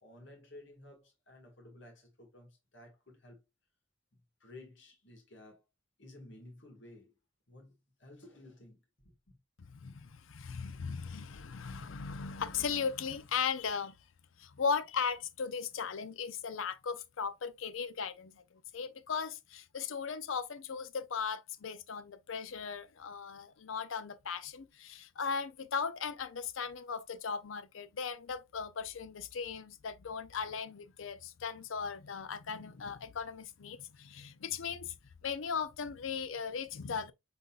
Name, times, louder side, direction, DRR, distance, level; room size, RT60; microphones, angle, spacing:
voice 1, 0.0-3.4 4.4-5.6 6.0-7.1 7.5-7.7 8.0-8.8 9.1-9.4, left 1 dB, 60° left, 1.8 m, -54 dB
voice 2, 9.6-14.0 14.4-18.4 18.7-35.0 35.2-37.1, left 6 dB, 80° left, 0.5 m, -37 dB
5.6 x 4.0 x 2.4 m
head